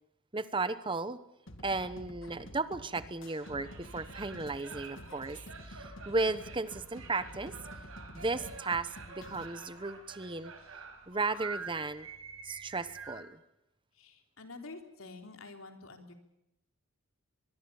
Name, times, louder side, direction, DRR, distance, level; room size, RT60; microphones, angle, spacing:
voice 1, 0.3-1.2 1.6-5.4 5.7-7.5 8.1-10.5 11.1-12.1 12.4-13.4, right 3 dB, 25° right, 13 dB, 0.9 m, -35 dB
sound 1, 1.5-9.5, left 1 dB, 60° left, 2.2 m, -49 dB
sound 2, 3.4-13.2, right 4 dB, 80° right, 6.6 m, -48 dB
voice 2, 13.9-16.1, left 3 dB, 80° left, 5 dB, 3.7 m, -48 dB
24.0 x 22.0 x 7.1 m, 0.88 s
head